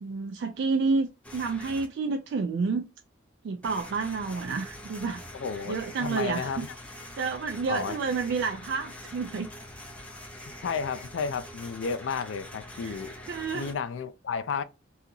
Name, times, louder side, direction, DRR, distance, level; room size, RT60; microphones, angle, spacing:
voice 1, 0.0-2.9 3.4-5.2 5.7-6.7 7.1-9.5 12.7-13.0 13.3-13.8, right 4 dB, 65° right, 0.3 m, -30 dB
sound 1, 1.2-1.9 3.6-13.7, left 1 dB, 5° left, 0.6 m, -44 dB
voice 2, 5.3-6.7 7.7-8.0 10.6-13.1 13.5-14.6, left 5 dB, 85° left, 0.4 m, -32 dB
2.8 x 2.4 x 3.7 m
head